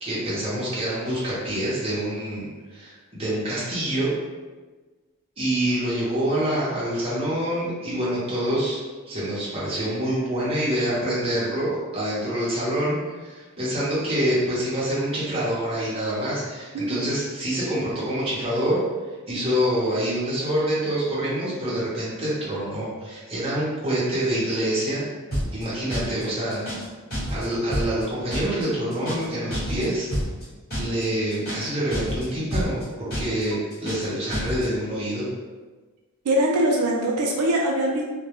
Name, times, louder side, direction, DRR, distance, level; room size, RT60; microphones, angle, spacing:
voice 1, 0.0-4.1 5.4-8.8 9.1-18.8 19.3-25.1 25.5-26.6 27.3-30.1 30.8-35.3, right 1 dB, 25° right, -8 dB, 0.7 m, -26 dB
voice 2, 16.7-17.1 33.5-33.6 36.2-38.0, right 1 dB, 85° right, -1 dB, 0.4 m, -22 dB
sound 1, 25.3-25.6 25.9-26.2 26.5-26.9 27.1-27.5 27.7-28.0 28.3-28.6 28.9-29.3 29.5-29.9 30.1-30.4 30.7-31.0 31.3-31.7 31.9-32.3 32.5-32.8 33.1-33.4 33.7-34.1 34.3-34.7, equal, 45° left, 1.1 m, -28 dB
2.2 x 2.1 x 2.9 m, 1.3 s
head